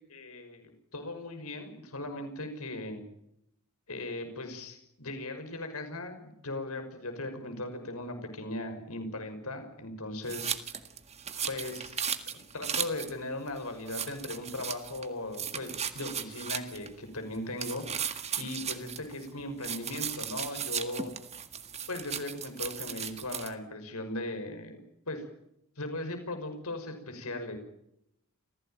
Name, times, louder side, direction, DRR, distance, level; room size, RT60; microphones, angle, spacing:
voice 1, 0.1-3.0 3.9-10.6 11.5-12.0 12.3-21.1 21.9-24.8 25.1-25.3 25.8-27.6, left 2 dB, 80° left, 7 dB, 5.8 m, -38 dB
sound 1, 10.3-13.1 13.5-13.6 13.9-15.1 15.3-16.9 17.6-19.3 19.6-23.5, right 8 dB, 30° right, 1.8 m, -36 dB
29.0 x 16.0 x 9.1 m, 0.79 s
head